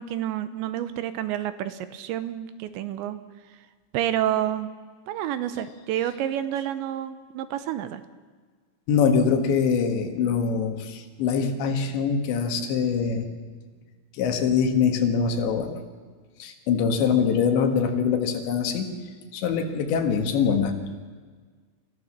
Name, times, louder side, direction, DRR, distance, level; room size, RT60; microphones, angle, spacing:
voice 1, 0.0-3.2 3.5-3.7 3.9-4.7 5.1-8.0, right 11 dB, 80° right, 12 dB, 2.9 m, -29 dB
voice 2, 8.9-13.3 14.2-15.8 16.4-18.9 19.3-20.8, left 6 dB, 70° left, 5 dB, 3.8 m, -23 dB
27.0 x 15.0 x 7.4 m, 1.5 s
omnidirectional pair, 5.5 m